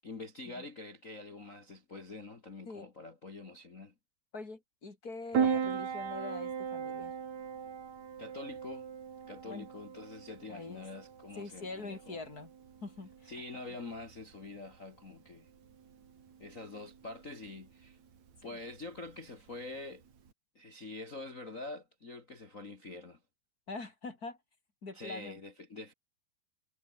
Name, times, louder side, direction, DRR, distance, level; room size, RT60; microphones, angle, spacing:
voice 1, 0.0-3.9 8.2-8.9 9.3-12.2 13.3-15.5 16.4-18.0 18.4-20.0 20.5-23.2 24.9-25.9, left 3 dB, 80° left, 0.7 m, -45 dB
voice 2, 4.3-7.1 9.4-9.7 10.5-10.8 11.4-12.5 12.8-13.6 18.4-18.6 23.7-24.4 24.8-25.4, left 3 dB, 25° left, 3.3 m, -44 dB
Piano, 5.3-20.3, right 7 dB, 45° right, 3.8 m, -39 dB
omnidirectional pair, 4.6 m